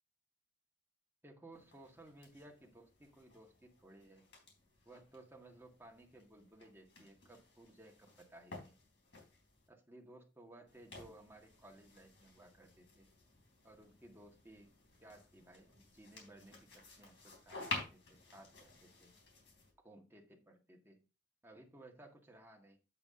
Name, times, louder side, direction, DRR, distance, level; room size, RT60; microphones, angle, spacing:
voice 1, 1.2-4.3 4.8-8.8 9.7-13.1 13.6-14.7 15.0-19.1 19.8-21.0 21.4-22.8, right 1 dB, 10° right, 0 dB, 1.7 m, -59 dB
sound 1, 1.5-9.7 10.7-19.7, left 3 dB, 65° left, 4.0 m, -52 dB
7.8 x 6.9 x 3.7 m, 0.30 s
head